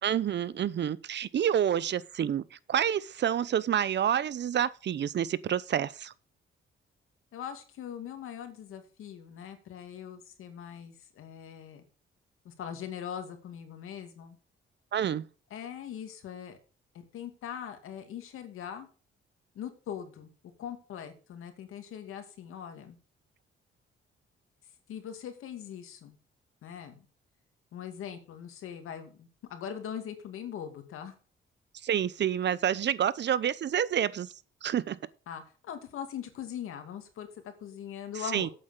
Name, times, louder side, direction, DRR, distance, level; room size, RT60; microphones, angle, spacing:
voice 1, 0.0-2.4 2.7-6.1 14.9-15.2 31.8-34.3 34.6-35.0 38.3-38.5, right 9 dB, 55° right, 0.7 m, -28 dB
voice 2, 7.3-11.8 12.4-14.4 15.5-16.6 17.1-18.9 19.5-20.3 20.6-23.0 24.9-26.2 26.6-27.1 27.7-31.2 35.3-38.5, left 8 dB, 85° left, 2.3 m, -41 dB
8.5 x 7.5 x 6.5 m
cardioid pair, 85°, 21 cm